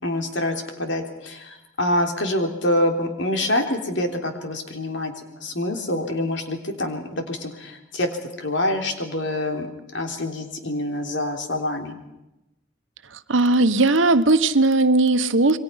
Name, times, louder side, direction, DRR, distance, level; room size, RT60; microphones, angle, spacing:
voice 1, 0.0-5.1 5.4-8.1 8.4-9.7 9.9-12.0, left 1 dB, 70° left, 4 dB, 3.6 m, -26 dB
voice 2, 13.3-15.6, right 2 dB, 85° right, 11 dB, 1.3 m, -18 dB
28.0 x 23.0 x 5.9 m, 0.94 s
head